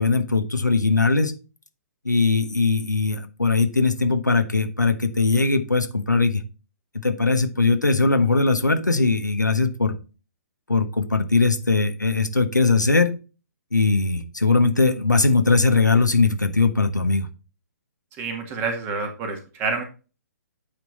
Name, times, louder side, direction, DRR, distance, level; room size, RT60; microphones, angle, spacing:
voice 1, 0.0-1.3 2.0-6.4 7.0-9.9 10.7-13.1 13.7-17.3, left 3 dB, 85° left, 7 dB, 1.2 m, -20 dB
voice 2, 18.2-19.8, right 4 dB, 20° right, 4 dB, 1.9 m, -28 dB
8.9 x 4.6 x 4.0 m, 0.33 s
figure-of-eight pair, 125°, 10 cm